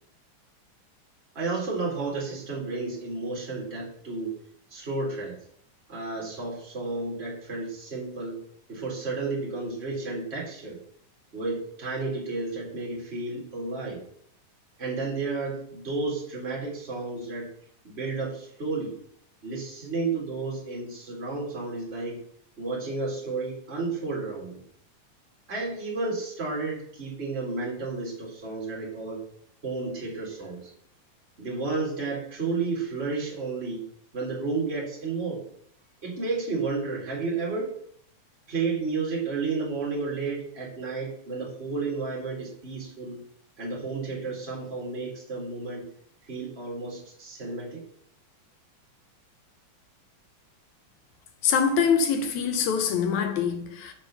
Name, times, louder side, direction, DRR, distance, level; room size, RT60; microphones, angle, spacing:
voice 1, 1.3-4.4 4.7-5.4 5.9-8.4 8.7-10.8 11.3-14.0 14.8-17.5 17.8-18.9 19.4-22.2 22.6-24.6 25.5-29.2 29.6-30.7 31.4-33.8 34.1-35.4 36.0-37.8 38.5-43.2 43.6-45.9 46.3-47.8, right 3 dB, 25° right, 2.1 m, -32 dB
voice 2, 51.4-53.9, left 6 dB, 75° left, 2.1 m, -24 dB
7.1 x 4.2 x 5.5 m
omnidirectional pair, 3.4 m